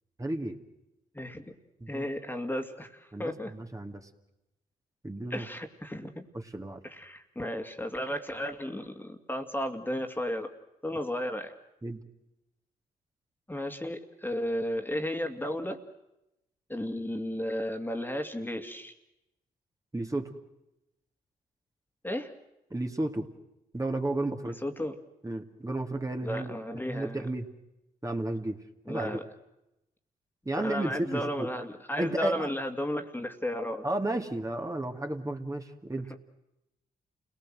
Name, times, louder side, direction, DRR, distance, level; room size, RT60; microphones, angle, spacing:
voice 1, 0.2-0.6 1.8-2.1 3.1-4.0 5.0-5.5 6.5-6.8 11.8-12.0 19.9-20.3 22.7-23.3 23.7-24.6 25.2-26.6 26.9-27.5 28.0-28.6 28.9-29.2 30.5-31.5 32.0-32.5 33.8-36.1, right 1 dB, 20° right, 3 dB, 2.4 m, -32 dB
voice 2, 1.1-1.5 1.9-3.5 5.3-6.3 6.8-10.5 10.8-11.5 13.5-15.8 16.7-18.9 22.0-22.3 24.6-25.0 26.2-27.2 28.9-29.2 30.6-33.8, left 1 dB, 10° left, 5 dB, 2.4 m, -34 dB
29.0 x 18.5 x 7.7 m, 0.90 s
hypercardioid pair, 45°, 17 cm